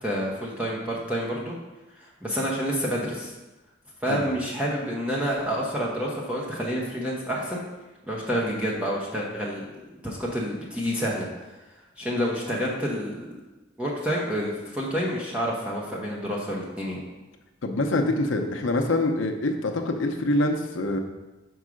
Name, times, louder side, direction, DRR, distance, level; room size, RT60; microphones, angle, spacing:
voice 1, 0.0-1.5 2.0-3.3 4.0-7.6 8.1-9.7 10.0-11.5 12.0-13.3 13.8-17.0, equal, 5° right, -4 dB, 0.9 m, -28 dB
voice 2, 17.6-21.0, left 2 dB, 90° left, 4 dB, 0.7 m, -25 dB
5.5 x 4.7 x 6.2 m, 1.1 s
head